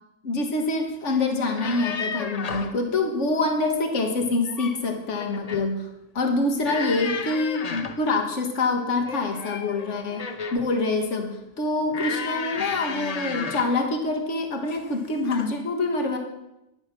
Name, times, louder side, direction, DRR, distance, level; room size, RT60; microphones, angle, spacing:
voice 1, 0.2-5.9 6.1-10.2 10.5-16.2, left 3 dB, 65° left, 4 dB, 1.8 m, -25 dB
sound 1, 1.4-2.8 4.2-4.8 5.2-5.7 6.6-8.1 9.0-10.7 11.9-13.8 14.7-15.0 15.3-15.5, left 5 dB, 40° left, 0.7 m, -33 dB
11.0 x 8.0 x 6.0 m, 0.90 s
omnidirectional pair, 1.3 m